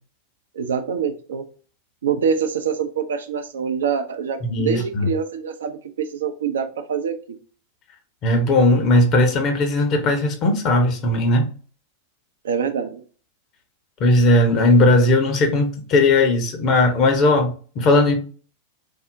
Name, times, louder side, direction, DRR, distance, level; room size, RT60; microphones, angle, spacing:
voice 1, 0.5-1.4 2.0-7.4 12.4-13.0, right 7 dB, 65° right, 7 dB, 0.4 m, -25 dB
voice 2, 4.4-5.1 8.2-11.5 14.0-18.1, left 2 dB, 35° left, 4 dB, 0.8 m, -17 dB
3.4 x 2.0 x 2.5 m, 0.41 s
figure-of-eight pair, 90°, 0 cm